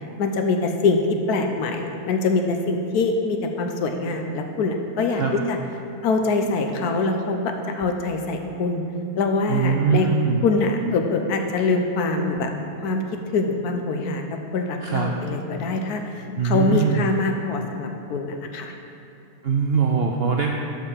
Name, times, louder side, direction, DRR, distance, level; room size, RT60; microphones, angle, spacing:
voice 1, 0.2-1.0 1.3-5.2 5.5-5.6 6.0-8.8 9.2-10.1 10.4-12.5 12.8-13.0 13.3-14.2 14.5-18.7, left 3 dB, 85° left, 4 dB, 1.3 m, -24 dB
voice 2, 9.5-10.4 14.8-15.1 16.4-17.0 19.4-20.5, right 6 dB, 70° right, 1 dB, 0.5 m, -22 dB
7.1 x 5.5 x 6.3 m, 2.9 s
omnidirectional pair, 1.6 m